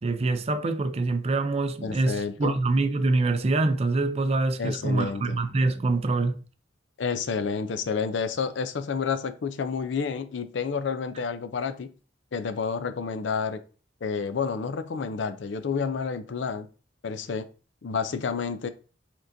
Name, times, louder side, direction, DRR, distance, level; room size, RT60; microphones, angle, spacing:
voice 1, 0.0-6.4, right 3 dB, 35° right, 0.4 m, -25 dB
voice 2, 1.8-2.5 4.6-5.4 7.0-11.9 12.3-13.6 14.0-16.7 17.0-17.5 17.8-18.7, left 5 dB, 70° left, 0.4 m, -29 dB
5.0 x 3.7 x 2.6 m
head